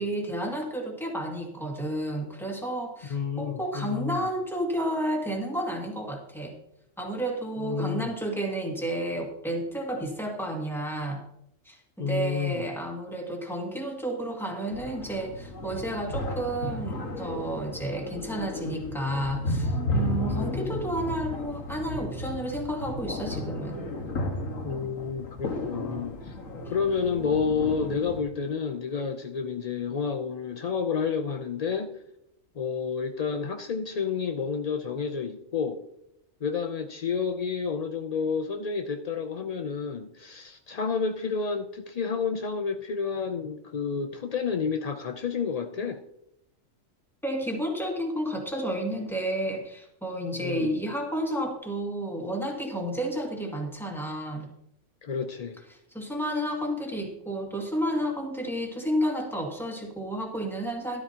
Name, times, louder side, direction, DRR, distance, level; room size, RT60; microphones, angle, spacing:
voice 1, 0.0-6.5 7.0-11.2 11.7-23.8 47.2-54.5 55.9-61.0, right 1 dB, ahead, 0 dB, 2.0 m, -31 dB
voice 2, 3.1-4.3 7.6-8.1 12.0-12.6 20.3-20.9 24.6-26.3 26.7-32.0 32.6-35.8 36.4-46.0 50.4-50.8 55.0-55.6, left 6 dB, 65° left, 6 dB, 0.4 m, -30 dB
sound 1, 14.7-28.2, left 1 dB, 85° left, 1.9 m, -33 dB
12.5 x 12.5 x 2.8 m, 0.82 s
omnidirectional pair, 1.3 m